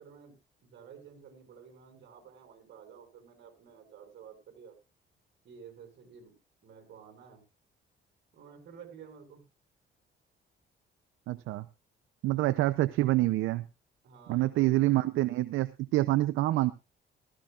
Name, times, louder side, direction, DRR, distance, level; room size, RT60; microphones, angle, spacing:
voice 1, 0.0-4.8 5.4-6.4 6.6-7.4 8.3-9.4 12.2-12.7 14.0-15.0, right 7 dB, 65° right, 4 dB, 5.8 m, -52 dB
voice 2, 11.3-11.7 12.2-13.7 14.3-16.7, right 17 dB, 90° right, 12 dB, 0.6 m, -26 dB
16.0 x 15.0 x 2.4 m, 0.29 s
cardioid pair, 90°, 20 cm